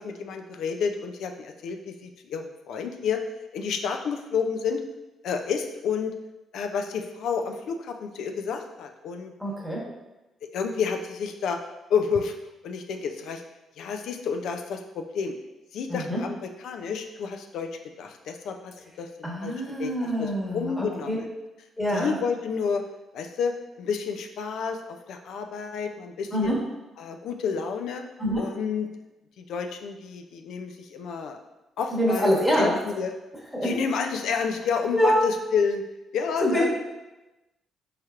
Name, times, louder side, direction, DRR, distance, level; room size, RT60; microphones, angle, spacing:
voice 1, 0.0-3.2 3.5-4.8 5.2-6.1 6.5-9.3 10.5-11.6 11.9-12.3 12.6-13.4 13.8-15.4 15.7-17.7 18.0-19.5 19.8-21.3 21.9-22.8 23.1-24.8 25.1-26.6 27.0-28.0 28.4-28.9 29.4-31.4 31.8-32.3 32.6-33.1 33.6-35.8 36.1-36.7, left 6 dB, 75° left, 5 dB, 0.4 m, -30 dB
voice 2, 9.4-9.9 15.9-16.2 19.2-21.2 21.8-22.1 26.3-26.6 28.2-28.4 31.9-32.8 33.5-33.7 34.9-35.2 36.4-36.7, equal, 5° left, -4 dB, 1.1 m, -25 dB
4.3 x 3.2 x 2.4 m, 1.0 s
cardioid pair, 90°, 0 cm